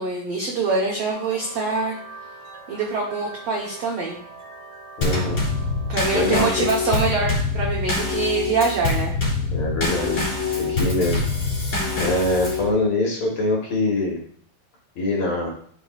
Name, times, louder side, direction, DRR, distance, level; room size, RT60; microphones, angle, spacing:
voice 1, 0.0-2.0 2.7-4.2 5.9-9.1, right 4 dB, 85° right, -2 dB, 1.4 m, -24 dB
sound 1, 1.1-6.2, right 3 dB, 60° right, 3.0 m, -42 dB
voice 2, 5.0-5.4 6.1-6.7 9.5-11.2 12.0-14.2 15.0-15.5, left 2 dB, 60° left, -2 dB, 2.1 m, -24 dB
Drum kit / Snare drum / Bass drum, 5.0-12.7, left 3 dB, 35° left, 3.0 m, -24 dB
11.5 x 5.7 x 2.4 m, 0.62 s
omnidirectional pair, 4.5 m